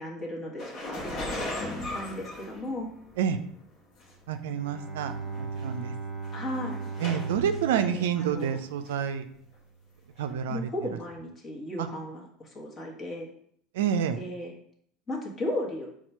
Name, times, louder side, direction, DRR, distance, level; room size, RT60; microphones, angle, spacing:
voice 1, 0.0-2.9 6.3-6.8 7.7-8.6 10.5-13.3 14.2-14.5 15.1-15.9, left 1 dB, 30° left, -1 dB, 1.2 m, -36 dB
sound 1, 0.6-3.2 4.0-4.1 5.0-5.1 5.3-5.6 6.2-7.6 8.0-8.6 8.8-8.9 10.2-10.3, left 1 dB, 55° left, 1.0 m, -37 dB
Bowed string instrument, 4.2-9.4, right 4 dB, 10° right, 0.9 m, -38 dB
voice 2, 4.3-5.9 7.0-9.2 10.2-10.7 11.8-11.9 13.7-14.2, right 8 dB, 75° right, 8 dB, 0.3 m, -28 dB
4.3 x 2.4 x 4.3 m, 0.67 s
hypercardioid pair, 80°, 0 cm